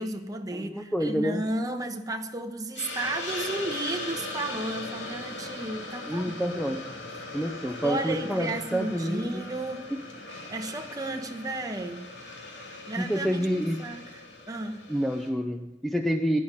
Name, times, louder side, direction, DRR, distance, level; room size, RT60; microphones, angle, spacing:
voice 1, 0.0-6.3 7.3-7.5 7.8-9.9 10.5-12.1 12.9-14.0 14.5-14.9, right 2 dB, 20° right, 1.1 m, -33 dB
voice 2, 0.5-1.4 6.1-6.9 7.3-9.5 13.0-13.8 14.9-16.4, equal, ahead, 0.5 m, -28 dB
Hiss, 2.7-15.3, left 2 dB, 80° left, 2.6 m, -39 dB
11.5 x 9.9 x 9.9 m
head